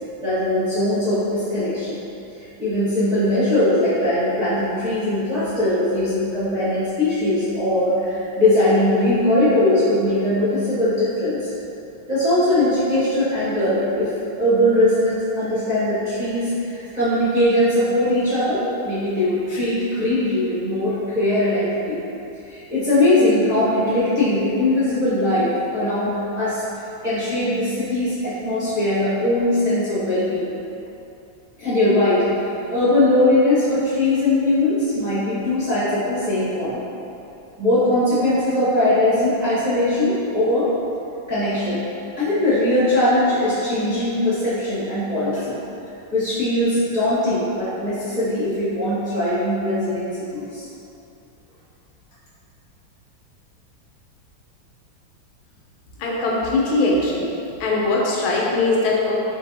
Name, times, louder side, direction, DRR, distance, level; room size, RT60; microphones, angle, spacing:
voice 1, 0.2-2.0 2.6-11.5 12.1-14.1 14.4-22.0 22.5-26.6 27.0-30.5 31.6-32.2 32.7-36.8 37.6-40.7 41.3-41.9 42.2-45.6 46.1-50.6, left 1 dB, 30° right, -14 dB, 0.8 m, -20 dB
voice 2, 56.0-57.3 57.6-59.1, left 2 dB, 90° left, -3 dB, 1.5 m, -20 dB
4.6 x 3.2 x 2.7 m, 2.8 s
omnidirectional pair, 2.2 m